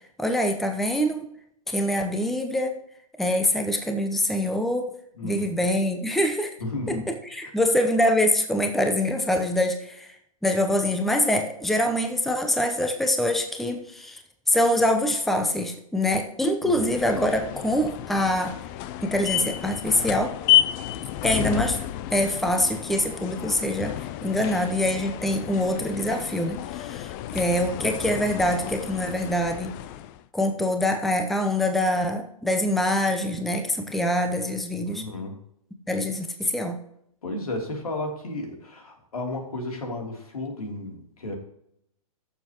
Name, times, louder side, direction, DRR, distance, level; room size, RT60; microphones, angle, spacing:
voice 1, 0.2-1.2 1.7-2.7 3.2-4.9 5.2-6.5 6.9-10.2 10.4-14.2 14.5-18.6 19.0-20.3 21.2-21.8 22.1-23.9 24.2-29.7 30.3-35.0 35.9-36.8, left 1 dB, ahead, 5 dB, 0.8 m, -24 dB
voice 2, 5.2-5.6 6.6-7.2 7.4-7.5 16.6-16.9 34.9-35.4 37.2-41.4, left 2 dB, 75° left, 2 dB, 3.2 m, -33 dB
sound 1, 16.7-30.2, left 13 dB, 35° left, 0.5 m, -30 dB
15.5 x 7.0 x 3.0 m, 0.72 s
hypercardioid pair, 125°, 19 cm